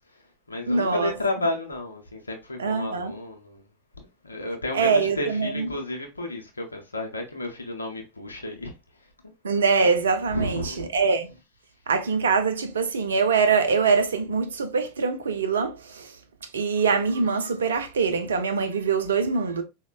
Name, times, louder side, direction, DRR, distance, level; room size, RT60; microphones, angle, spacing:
voice 1, 0.1-3.6 4.0-8.7 9.2-9.3 10.3-10.9, left 1 dB, 85° left, 0.5 m, -32 dB
voice 2, 0.7-1.1 2.6-3.1 4.7-5.7 9.4-11.3 11.9-19.6, right 5 dB, 75° right, 0.5 m, -24 dB
4.0 x 2.1 x 2.2 m
figure-of-eight pair, 85°, 0 cm